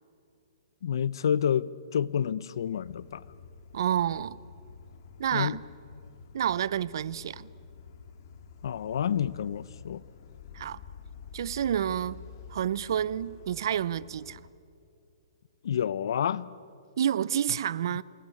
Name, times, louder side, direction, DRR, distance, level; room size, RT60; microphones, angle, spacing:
voice 1, 0.8-3.2 5.3-5.6 8.6-10.0 15.6-16.5, left 8 dB, 65° left, 0.7 m, -29 dB
sound 1, 2.8-14.5, left 6 dB, 45° left, 2.2 m, -49 dB
voice 2, 3.7-4.4 5.2-5.6 6.3-7.5 10.5-10.8 11.3-12.2 12.5-14.4 17.0-18.0, right 10 dB, 60° right, 0.7 m, -29 dB
27.5 x 21.5 x 9.8 m
hypercardioid pair, 160°, 3 cm